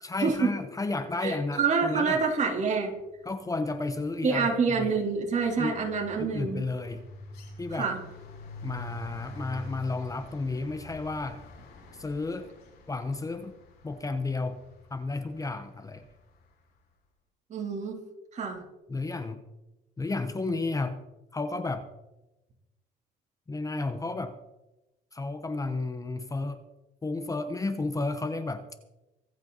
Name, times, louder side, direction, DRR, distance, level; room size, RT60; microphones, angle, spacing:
voice 1, 0.0-2.2 3.2-4.5 4.8-4.9 5.6-5.8 6.2-7.0 7.6-7.9 8.6-11.4 11.9-12.5 12.9-13.6 13.8-14.6 14.9-16.0 18.9-19.4 20.0-21.0 21.3-21.9 23.5-24.4 25.1-26.6 27.0-28.6, left 3 dB, 20° left, 10 dB, 1.0 m, -32 dB
voice 2, 1.2-2.9 4.2-6.6 7.7-8.0 17.5-18.0 18.3-18.6, right 5 dB, 45° right, 1 dB, 3.5 m, -27 dB
sound 1, 2.7-3.0 3.3-16.4, left 1 dB, 70° left, 5.5 m, -47 dB
25.0 x 8.4 x 4.1 m, 1.0 s
cardioid pair, 110°, 17 cm